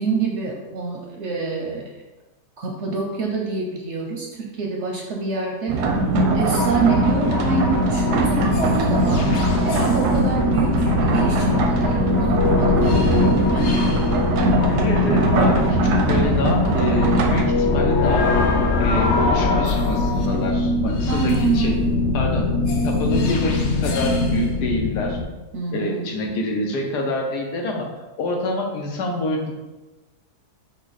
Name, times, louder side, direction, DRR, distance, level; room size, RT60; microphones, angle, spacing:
voice 1, 0.0-1.9 2.6-5.8 6.3-13.8 21.1-21.9 25.5-26.2, right 4 dB, 60° right, 0 dB, 0.7 m, -26 dB
sound 1, 5.7-17.4, right 2 dB, 85° right, 1.2 m, -21 dB
sound 2, 6.4-25.2, left 3 dB, 65° left, 0.7 m, -22 dB
voice 2, 14.7-15.8 16.1-18.3 18.8-21.8 22.1-22.5 22.8-25.2 25.7-27.9 28.2-29.5, left 2 dB, 90° left, 1 dB, 1.3 m, -26 dB
6.0 x 2.2 x 4.0 m, 1.2 s
omnidirectional pair, 1.7 m